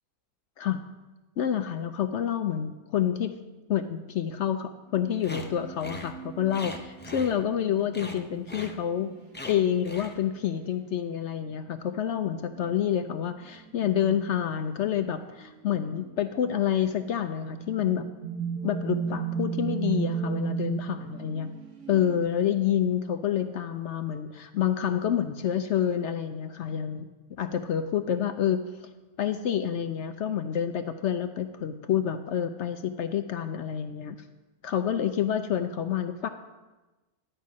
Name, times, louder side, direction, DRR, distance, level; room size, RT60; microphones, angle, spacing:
voice 1, 1.4-3.3 3.7-9.1 9.5-18.1 18.6-21.5 21.9-27.1 27.4-28.9 29.2-34.2 34.6-36.3, left 9 dB, 65° left, 8 dB, 0.7 m, -28 dB
sound 1, 4.9-9.2 10.4-10.6 11.5-12.0 12.5-12.9 13.3-14.9 15.2-16.1 16.9-17.0 17.3-22.2, right 7 dB, 60° right, 1.7 m, -36 dB
sound 2, 5.2-5.5 5.8-6.1 6.5-7.6 7.9-8.2 8.5-8.8 9.3-9.6 9.8-10.2, left 1 dB, 10° left, 0.5 m, -40 dB
11.0 x 5.5 x 7.4 m, 1.1 s
omnidirectional pair, 1.6 m